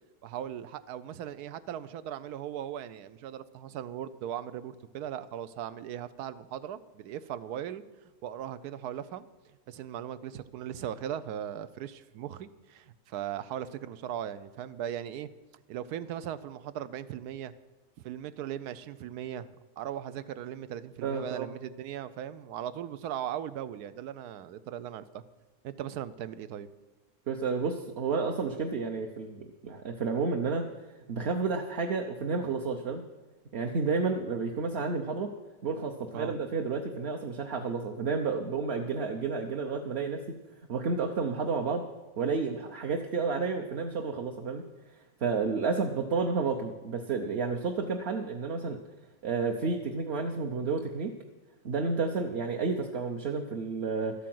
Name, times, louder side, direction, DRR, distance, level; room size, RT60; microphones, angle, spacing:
voice 1, 0.2-7.8 8.2-9.3 9.7-15.3 15.7-17.5 18.0-19.5 19.8-25.2 25.6-26.7 36.1-36.3, right 10 dB, 85° right, 14 dB, 1.2 m, -38 dB
voice 2, 21.0-21.5 27.3-30.7 31.1-33.0 33.5-35.3 35.6-40.2 40.7-41.8 42.2-44.6 45.2-48.8 49.2-51.1 51.6-54.1, right 4 dB, 50° right, 3 dB, 0.9 m, -31 dB
13.0 x 8.4 x 7.7 m, 1.2 s
omnidirectional pair, 1.6 m